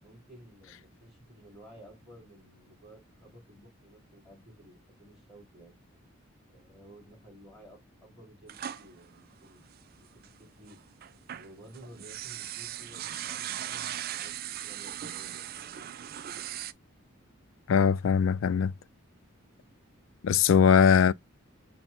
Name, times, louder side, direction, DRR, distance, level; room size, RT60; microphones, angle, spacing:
voice 1, 0.0-5.8 6.5-9.6 10.0-10.1 10.4-10.8 11.3-15.5, right 1 dB, ahead, 3.2 m, -54 dB
sound 1, 8.5-10.3 10.7-16.7, right 11 dB, 45° right, 0.3 m, -39 dB
voice 2, 17.7-18.7 20.2-21.1, left 7 dB, 65° left, 0.3 m, -21 dB
5.7 x 2.3 x 4.0 m
head